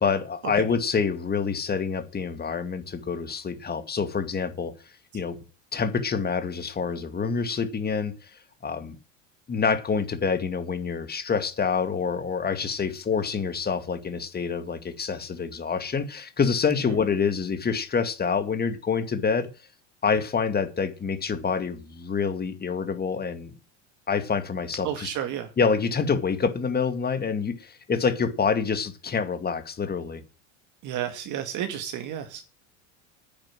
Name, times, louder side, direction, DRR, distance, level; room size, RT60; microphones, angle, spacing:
voice 1, 0.0-4.7 5.1-5.4 5.7-8.3 8.6-9.0 9.5-19.5 20.0-23.5 24.1-25.1 25.6-30.2, left 5 dB, 25° left, 10 dB, 2.2 m, -27 dB
voice 2, 24.8-25.5 30.8-32.4, right 10 dB, 50° right, 6 dB, 2.2 m, -31 dB
10.0 x 7.7 x 7.5 m, 0.35 s
hypercardioid pair, 90°, 38 cm